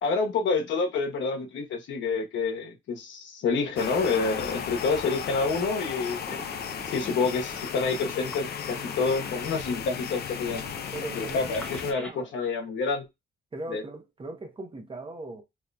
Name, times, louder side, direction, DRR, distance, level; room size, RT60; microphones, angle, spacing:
voice 1, 0.0-6.4 6.9-10.7 11.1-13.1 13.7-13.8, left 4 dB, 70° left, 1.0 m, -28 dB
sound 1, 3.5-12.1, equal, 5° left, 1.1 m, -46 dB
sound 2, 3.8-11.9, left 8 dB, 55° left, 0.5 m, -35 dB
voice 2, 10.9-12.3 13.5-15.4, right 2 dB, 25° right, 0.9 m, -39 dB
3.7 x 3.0 x 2.2 m
cardioid pair, 90°, 20 cm